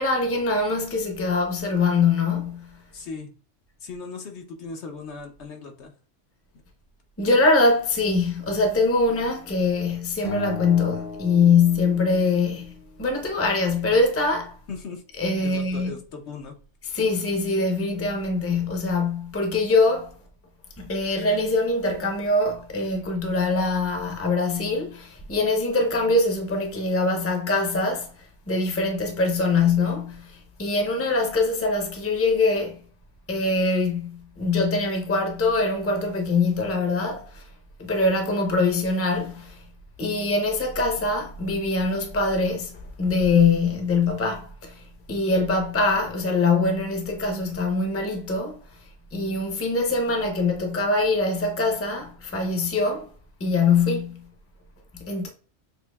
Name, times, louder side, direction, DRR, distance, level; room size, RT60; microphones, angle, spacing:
voice 1, 0.0-2.8 7.2-12.7 13.0-14.6 15.2-15.9 16.9-20.2 20.8-32.8 33.3-37.5 37.8-39.6 40.0-48.6 49.1-53.1 53.4-54.2 54.9-55.3, left 3 dB, 15° left, 0.6 m, -23 dB
voice 2, 2.9-3.3 3.8-5.9 6.5-6.6 14.7-15.0 15.4-16.6, left 4 dB, 65° left, 1.0 m, -38 dB
Acoustic guitar, 10.2-12.6, left 3 dB, 50° left, 0.8 m, -36 dB
6.6 x 2.7 x 2.3 m
omnidirectional pair, 1.3 m